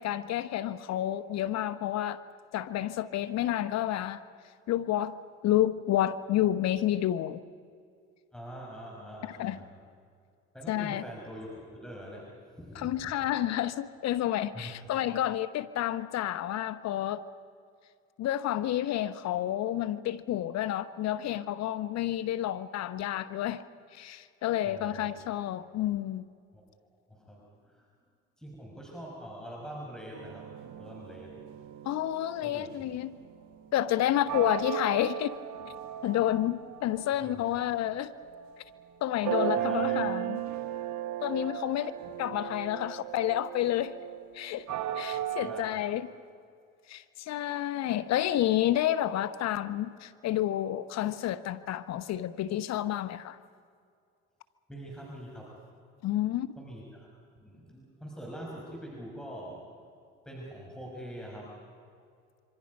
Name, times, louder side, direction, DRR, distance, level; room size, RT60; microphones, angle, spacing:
voice 1, 0.0-2.2 2.5-4.2 4.7-7.4 9.2-9.6 10.7-11.0 12.8-17.2 18.2-23.6 23.9-26.3 31.8-33.1 33.7-35.3 36.0-38.1 39.0-40.4 41.2-41.9 42.2-44.0 44.3-44.6 45.0-46.1 46.9-53.4 56.0-56.5, left 12 dB, 60° left, 1.0 m, -30 dB
voice 2, 8.3-9.7 10.5-12.3 12.6-13.1 14.5-14.8 24.6-25.1 26.5-26.6 27.1-27.9 28.4-30.4 30.8-31.3 32.4-32.7 37.2-37.6 39.6-40.1 41.2-41.3 45.4-45.8 54.7-55.5 56.6-57.1 57.4-59.6 60.3-61.5, equal, ahead, 5.8 m, -44 dB
sound 1, 30.1-37.5 37.9-38.9 39.2-45.6, right 12 dB, 65° right, 1.3 m, -36 dB
26.5 x 25.0 x 5.4 m
supercardioid pair, 80°, 30 cm